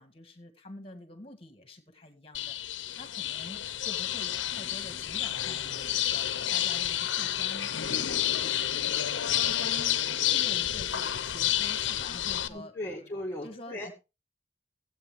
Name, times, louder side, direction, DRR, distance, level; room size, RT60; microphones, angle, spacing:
voice 1, 0.0-7.7 8.0-10.0 10.3-13.1 13.4-13.9, left 1 dB, 30° left, 2.0 m, -47 dB
sound 1, 2.3-12.5, left 11 dB, 80° left, 0.8 m, -30 dB
voice 2, 12.5-13.9, left 1 dB, 15° left, 1.8 m, -37 dB
16.0 x 8.4 x 3.5 m
head